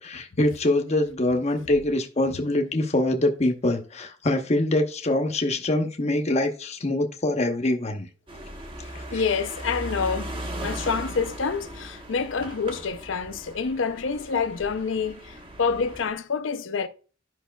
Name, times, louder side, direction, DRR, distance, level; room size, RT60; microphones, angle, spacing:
voice 1, 0.0-8.1 8.9-9.2, left 1 dB, 35° left, 0.8 m, -24 dB
sound 1, 8.3-16.1, right 1 dB, 25° right, 1.1 m, -38 dB
voice 2, 9.1-16.9, left 5 dB, 70° left, 0.6 m, -27 dB
11.5 x 5.5 x 2.2 m
head